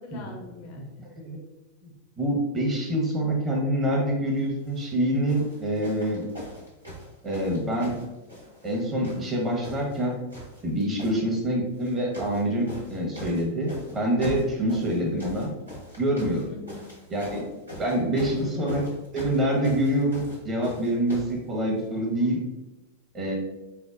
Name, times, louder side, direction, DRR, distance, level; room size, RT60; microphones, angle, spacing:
voice 1, 0.0-1.1 11.1-11.4 16.5-16.9 18.3-18.9, left 3 dB, 45° left, 1 dB, 0.5 m, -43 dB
voice 2, 2.2-6.2 7.2-7.9 8.6-10.1 10.6-15.5 16.0-16.5 17.1-17.5 17.8-18.8 19.1-22.4 23.1-23.4, right 1 dB, 25° right, -1 dB, 0.9 m, -26 dB
sound 1, 4.6-4.9 5.3-8.8 9.0-10.0 10.3-11.2 11.8-12.4 12.7-21.4 22.2-22.3, equal, 80° right, 1.2 m, -41 dB
4.5 x 2.0 x 2.4 m, 1.0 s
figure-of-eight pair, 90°, 0 cm